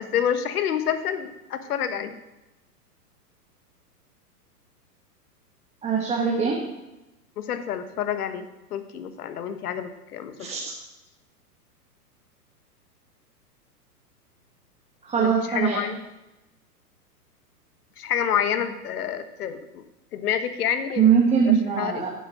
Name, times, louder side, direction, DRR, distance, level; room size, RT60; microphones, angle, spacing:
voice 1, 0.0-2.2 7.4-10.5 15.2-16.0 18.0-19.8 20.1-21.1 21.4-22.0, left 9 dB, 65° left, 10 dB, 1.3 m, -28 dB
voice 2, 5.8-6.7 10.4-10.6 15.0-15.8 21.0-22.1, right 7 dB, 15° right, -3 dB, 1.3 m, -21 dB
10.0 x 7.7 x 6.3 m, 0.98 s
hypercardioid pair, 120°, 48 cm